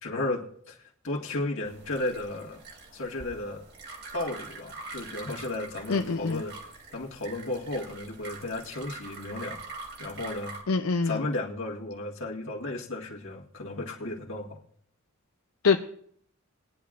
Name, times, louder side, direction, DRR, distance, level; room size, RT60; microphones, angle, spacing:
voice 1, 0.0-2.6 2.9-3.6 4.1-9.6 10.0-10.5 11.0-14.6, left 2 dB, 65° left, -1 dB, 1.9 m, -34 dB
sound 1, 1.6-10.6, right 3 dB, 55° right, 2.4 m, -44 dB
voice 2, 5.9-6.4 10.7-11.2 15.6-15.8, left 4 dB, 85° left, 5 dB, 0.6 m, -24 dB
20.0 x 10.5 x 2.5 m, 0.63 s
head